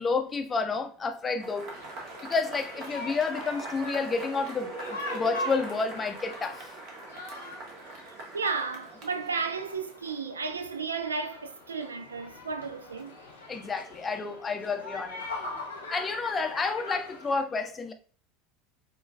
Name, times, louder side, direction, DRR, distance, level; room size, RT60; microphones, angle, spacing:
voice 1, 0.0-1.7 2.2-6.7 13.5-15.2 15.9-17.9, left 4 dB, 20° left, 0.5 m, -30 dB
Cheering / Applause / Crowd, 1.4-10.0, right 2 dB, 45° right, 0.9 m, -42 dB
sound 1, 1.7-17.4, left 2 dB, 80° left, 0.8 m, -42 dB
voice 2, 8.3-13.1, right 4 dB, 80° right, 0.3 m, -33 dB
5.0 x 2.3 x 2.3 m
figure-of-eight pair, 75°, 0 cm